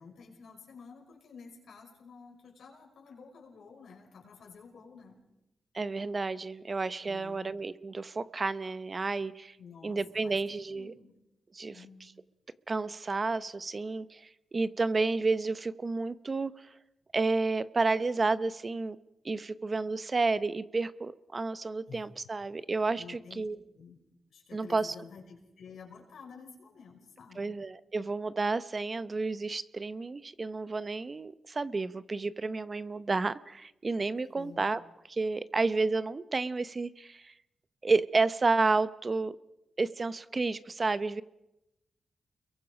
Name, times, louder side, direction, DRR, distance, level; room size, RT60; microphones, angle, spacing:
voice 1, 0.0-5.2 7.0-7.5 9.6-10.4 10.7-11.1 11.7-12.1 21.9-22.0 22.9-23.5 23.7-24.0 24.3-27.6 34.3-34.6, left 5 dB, 85° left, 0 dB, 5.8 m, -51 dB
voice 2, 5.7-9.6 9.8-10.9 11.5-11.9 12.7-16.7 17.1-19.0 19.2-23.6 24.5-24.9 27.4-34.8 35.1-37.3 37.8-39.3 39.8-41.2, right 3 dB, 35° right, 15 dB, 0.8 m, -31 dB
29.5 x 22.5 x 5.2 m, 0.90 s
cardioid pair, 90°, 0 cm